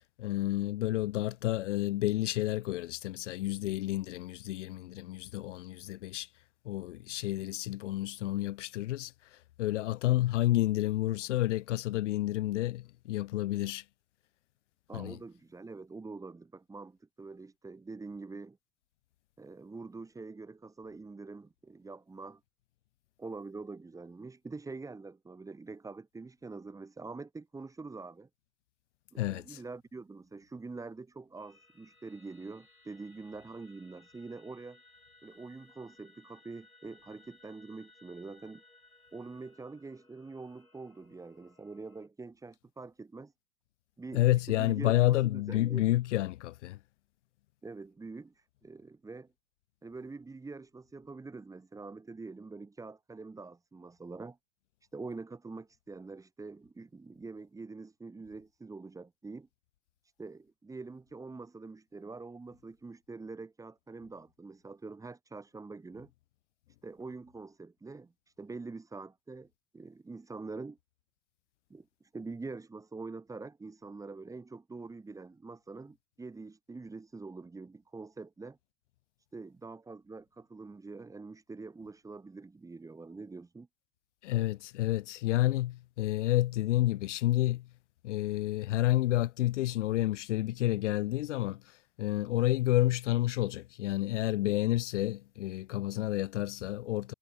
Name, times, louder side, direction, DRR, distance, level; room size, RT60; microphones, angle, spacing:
voice 1, 0.2-6.3 6.6-13.8 14.9-15.2 29.2-29.6 44.1-46.8 84.2-87.7 88.0-97.1, left 15 dB, 60° left, 0.5 m, -30 dB
voice 2, 14.9-18.6 19.4-22.4 23.2-28.3 29.1-34.8 35.2-38.6 39.1-43.3 44.0-45.9 47.6-49.3 49.8-54.4 54.9-59.5 60.0-66.1 66.8-70.8 71.7-78.6 79.3-83.7, right 3 dB, 10° right, 1.2 m, -45 dB
sound 1, 31.4-42.1, left 2 dB, 90° left, 2.4 m, -62 dB
figure-of-eight pair, 85°, 42 cm